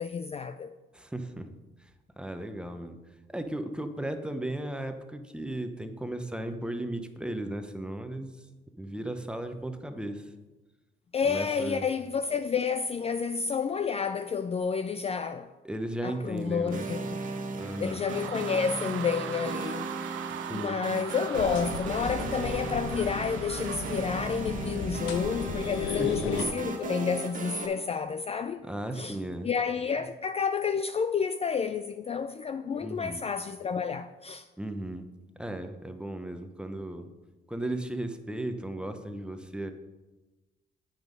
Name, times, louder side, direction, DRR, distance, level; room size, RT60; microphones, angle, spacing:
voice 1, 0.0-0.8 11.1-15.5 16.0-17.2 17.8-19.9 20.5-28.6 28.9-29.2 29.4-34.5, left 6 dB, 30° left, 0.4 m, -30 dB
voice 2, 0.9-1.5 1.8-1.9 2.2-3.0 3.3-8.4 8.8-10.3 11.2-11.9 15.6-16.9 17.5-18.0 20.4-20.8 25.9-26.3 28.7-29.5 32.8-33.2 34.6-35.1 35.4-37.1 37.5-39.7, right 1 dB, 5° right, 0.9 m, -36 dB
sound 1, 16.3-24.6, right 11 dB, 80° right, 0.5 m, -41 dB
sound 2, 16.7-27.7, right 3 dB, 40° right, 1.3 m, -37 dB
sound 3, 21.3-26.4, left 5 dB, 85° left, 1.1 m, -35 dB
8.9 x 6.1 x 5.2 m
cardioid pair, 90°, 20 cm